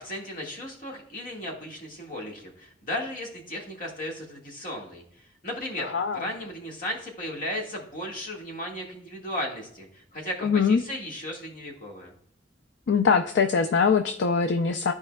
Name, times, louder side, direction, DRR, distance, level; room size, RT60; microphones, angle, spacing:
voice 1, 0.0-5.0 5.4-12.1, left 1 dB, 50° left, 0 dB, 1.7 m, -35 dB
voice 2, 5.8-6.2 10.4-10.8 12.9-14.9, left 5 dB, 70° left, 7 dB, 0.4 m, -22 dB
13.0 x 4.8 x 2.2 m, 0.69 s
head